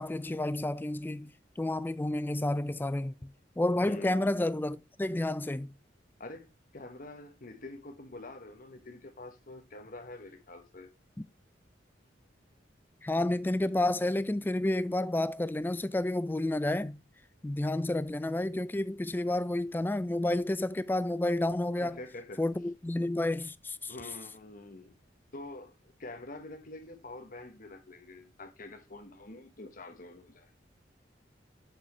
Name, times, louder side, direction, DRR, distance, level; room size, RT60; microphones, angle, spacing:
voice 1, 0.0-5.7 11.2-11.3 13.0-17.0 17.4-22.0 22.4-24.0, left 1 dB, 10° left, 0.3 m, -30 dB
voice 2, 3.8-4.1 6.2-10.9 21.8-22.4 23.9-24.9 25.3-30.5, left 2 dB, 50° left, 1.2 m, -46 dB
6.7 x 6.1 x 3.1 m
head